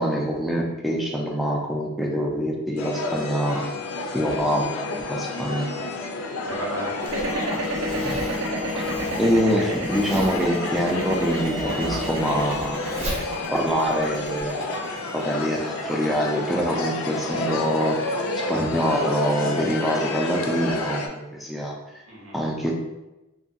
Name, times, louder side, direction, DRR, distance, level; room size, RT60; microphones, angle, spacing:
voice 1, 0.0-3.7 4.1-4.7 5.1-5.7 8.7-8.8 9.2-13.0 13.5-14.7 15.1-18.0 18.4-21.8 22.3-22.7, equal, ahead, -1 dB, 0.3 m, -25 dB
sound 1, 2.8-21.1, left 2 dB, 75° left, 0.4 m, -30 dB
voice 2, 6.4-7.6 11.8-12.0 12.9-13.2 22.1-22.5, right 1 dB, 80° right, -5 dB, 1.0 m, -35 dB
sound 2, 7.0-17.2, right 2 dB, 65° right, 0.4 m, -32 dB
Zipper (clothing), 7.1-14.5, right 1 dB, 30° right, 0.7 m, -36 dB
2.6 x 2.3 x 2.6 m, 1.0 s
head